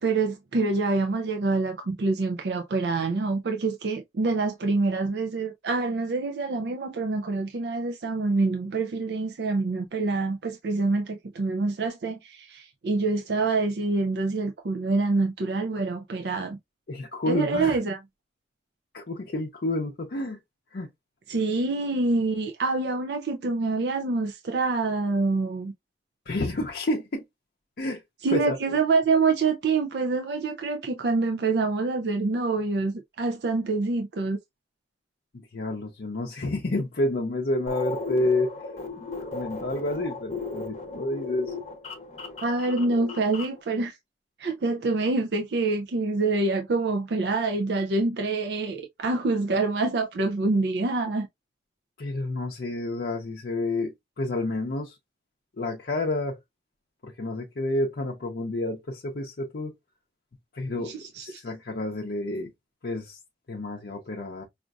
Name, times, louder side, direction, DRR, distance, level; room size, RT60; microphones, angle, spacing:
voice 1, 0.0-16.6 17.3-18.0 21.3-25.7 28.2-34.4 42.4-44.0 44.4-51.3 60.8-61.4, right 3 dB, 65° right, 0.5 m, -26 dB
voice 2, 16.9-17.8 18.9-20.4 20.7-20.9 26.3-27.2 27.8-28.0 28.3-28.6 35.3-38.5 39.2-41.5 52.0-54.9 55.6-56.4 57.0-59.7 60.5-60.9 61.2-62.5 62.8-63.2 63.5-64.4, left 2 dB, 60° left, 0.6 m, -29 dB
sound 1, 37.7-43.6, left 3 dB, 40° left, 0.9 m, -36 dB
5.0 x 2.4 x 2.3 m
head